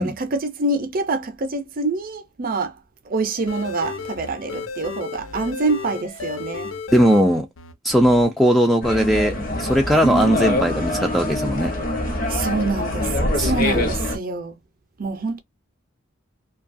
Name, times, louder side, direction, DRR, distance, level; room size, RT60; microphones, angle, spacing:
voice 1, 0.0-2.7 3.1-6.7 12.3-14.6 15.0-15.4, right 3 dB, 45° right, 0.5 m, -26 dB
sound 1, 3.4-8.7 8.9-9.8, left 4 dB, 70° left, 0.6 m, -34 dB
voice 2, 6.9-7.5 7.8-11.7 13.4-13.9, equal, ahead, 0.3 m, -19 dB
sound 2, 8.8-14.2, left 1 dB, 45° left, 0.9 m, -24 dB
2.7 x 2.3 x 2.5 m
head